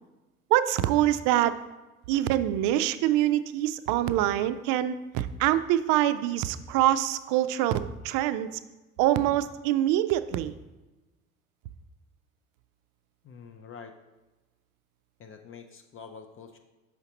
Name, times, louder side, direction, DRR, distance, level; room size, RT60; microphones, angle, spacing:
voice 1, 0.5-1.5 2.1-7.7 8.0-8.5 9.0-10.5, right 13 dB, 50° right, 13 dB, 0.4 m, -25 dB
voice 2, 13.2-13.9 15.2-16.6, left 6 dB, 30° left, 6 dB, 0.5 m, -46 dB
5.7 x 5.7 x 2.9 m, 1.1 s
hypercardioid pair, 65°, 41 cm